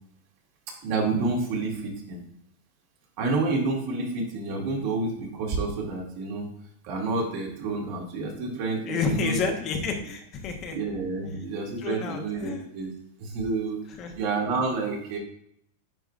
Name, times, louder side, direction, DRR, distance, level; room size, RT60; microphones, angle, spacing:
voice 1, 0.8-2.2 3.2-6.5 6.8-9.5 10.7-12.9 13.2-13.8 14.1-15.2, right 3 dB, 55° right, -1 dB, 2.1 m, -29 dB
voice 2, 8.9-10.8 11.3-11.4 11.8-12.6 14.0-14.1, left 5 dB, 40° left, 3 dB, 1.1 m, -30 dB
9.2 x 4.7 x 2.5 m, 0.73 s
hypercardioid pair, 125°, 0 cm